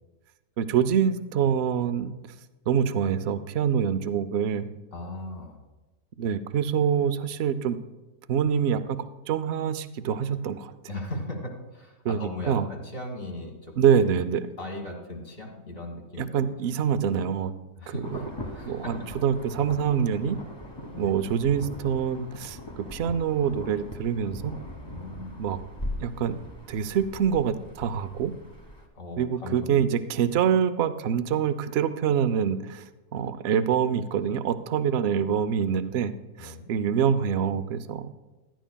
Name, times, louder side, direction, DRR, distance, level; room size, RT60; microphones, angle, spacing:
voice 1, 0.6-2.2 2.7-4.7 6.2-7.8 8.3-10.7 12.0-12.7 13.8-14.5 16.2-17.5 17.9-18.2 18.6-20.4 21.0-22.6 22.9-24.5 25.4-25.6 26.0-26.4 26.7-28.3 29.2-32.8 33.1-38.1, right 8 dB, 65° right, 13 dB, 0.6 m, -25 dB
voice 2, 4.9-5.6 10.9-13.7 14.6-16.4 17.7-19.2 20.9-21.1 24.8-25.4 28.9-29.8 36.4-36.7, left 1 dB, 40° left, 1 dB, 1.7 m, -38 dB
Insect / Thunder / Rain, 18.0-28.9, left 1 dB, 20° left, 1.1 m, -40 dB
15.0 x 11.5 x 2.2 m, 1.1 s
omnidirectional pair, 1.6 m